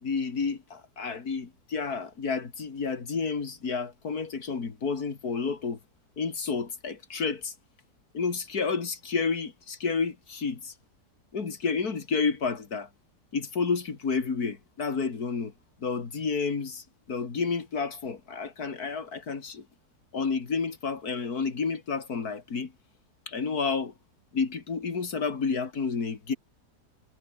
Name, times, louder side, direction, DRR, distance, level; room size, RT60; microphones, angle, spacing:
voice 1, 0.0-5.8 6.2-7.5 8.1-10.7 11.3-12.9 13.3-15.5 15.8-19.6 20.1-22.7 23.3-23.9 24.3-26.4, left 5 dB, 65° left, 2.9 m, -30 dB
omnidirectional pair, 1.8 m